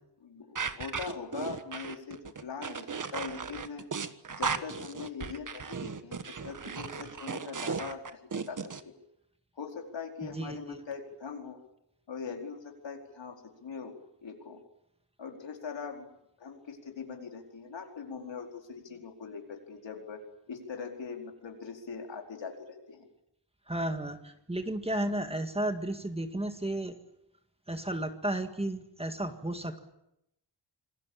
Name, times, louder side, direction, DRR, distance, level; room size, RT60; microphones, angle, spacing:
voice 1, 0.2-3.9 4.3-8.9 9.6-11.6 12.1-14.0 14.2-14.6 15.2-23.1, left 5 dB, 80° left, 3 dB, 4.6 m, -42 dB
sound 1, 0.6-8.8, right 5 dB, 45° right, 1.5 m, -36 dB
voice 2, 10.2-10.8 23.7-27.0 27.7-29.9, right 1 dB, 15° right, 7 dB, 1.9 m, -33 dB
27.0 x 21.0 x 8.8 m, 0.82 s
wide cardioid pair, 150°, 44 cm